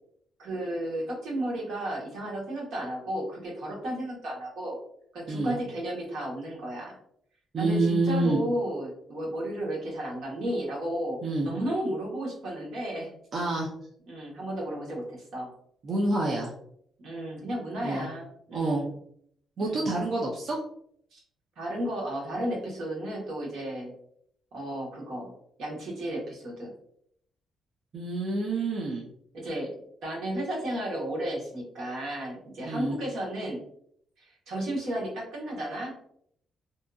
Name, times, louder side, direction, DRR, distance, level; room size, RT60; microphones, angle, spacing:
voice 1, 0.4-4.8 5.1-7.0 7.6-11.2 11.4-13.1 14.1-15.5 17.0-18.9 19.6-19.9 21.1-21.2 21.6-23.9 24.5-25.3 25.6-26.7 29.3-33.6 34.2-36.0, right 1 dB, 70° right, -2 dB, 1.0 m, -33 dB
voice 2, 7.5-8.4 11.2-11.5 13.3-13.7 15.8-16.5 17.8-18.1 18.5-18.9 19.6-20.6 27.9-29.1 32.6-33.0, right 2 dB, 45° right, -2 dB, 0.4 m, -27 dB
2.6 x 2.5 x 2.3 m, 0.68 s
cardioid pair, 135°, 0 cm